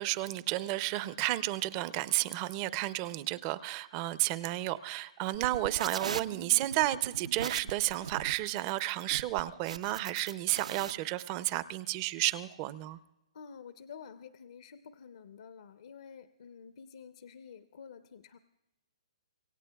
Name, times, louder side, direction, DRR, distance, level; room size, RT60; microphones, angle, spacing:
voice 1, 0.0-13.0, right 17 dB, 25° right, 16 dB, 0.5 m, -32 dB
sound 1, 5.3-10.9, right 6 dB, 80° right, 0.6 m, -40 dB
voice 2, 13.3-18.4, left 6 dB, 65° left, 9 dB, 0.7 m, -50 dB
26.0 x 17.0 x 2.3 m, 0.94 s
hypercardioid pair, 160°, 4 cm